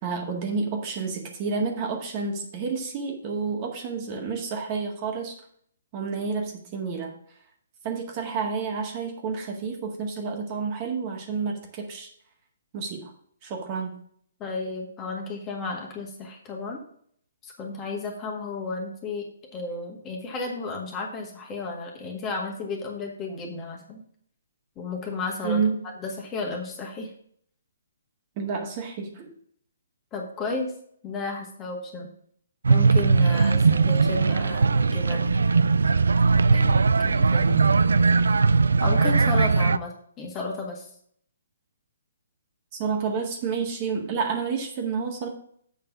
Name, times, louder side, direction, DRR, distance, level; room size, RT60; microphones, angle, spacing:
voice 1, 0.0-5.4 5.9-7.1 7.8-12.1 12.7-13.1 13.4-14.0 25.4-25.9 28.4-29.3 42.7-45.3, right 5 dB, 30° right, 2 dB, 1.8 m, -29 dB
voice 2, 14.4-16.8 17.4-19.3 19.5-24.0 24.8-25.6 26.0-27.1 30.1-30.7 31.0-32.1 32.7-35.4 36.5-37.6 38.8-40.9, left 3 dB, 20° left, 1 dB, 1.8 m, -33 dB
sound 1, 32.6-39.8, right 4 dB, 70° right, 0.3 m, -20 dB
7.6 x 5.4 x 5.9 m, 0.62 s
figure-of-eight pair, 130°, 0 cm